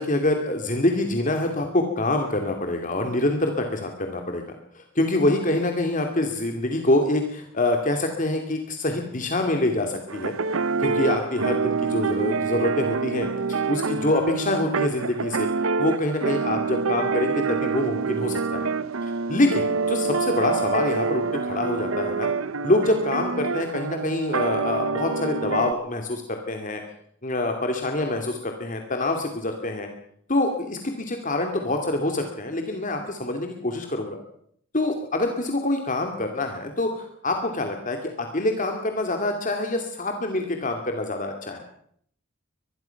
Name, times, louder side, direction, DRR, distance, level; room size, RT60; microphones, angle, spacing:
voice 1, 0.0-4.4 4.7-10.3 10.8-15.5 15.8-18.7 19.0-22.3 22.6-26.8 27.2-29.9 30.3-34.2 34.7-41.6, left 2 dB, 40° left, 4 dB, 2.6 m, -25 dB
sound 1, 10.1-25.7, right 4 dB, 80° right, 0.8 m, -26 dB
24.5 x 21.0 x 5.9 m, 0.66 s
head